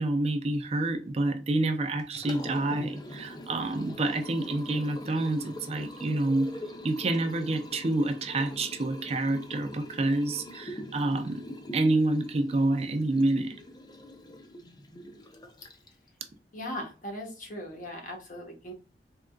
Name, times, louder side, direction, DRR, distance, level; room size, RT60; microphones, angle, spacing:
voice 1, 0.0-6.5 6.8-11.4 11.7-13.5, right 2 dB, 35° right, 0.4 m, -28 dB
Liquid, 2.0-16.1, left 1 dB, 25° left, 0.5 m, -43 dB
voice 2, 16.5-18.7, equal, 45° left, 1.2 m, -39 dB
3.7 x 3.4 x 2.2 m
head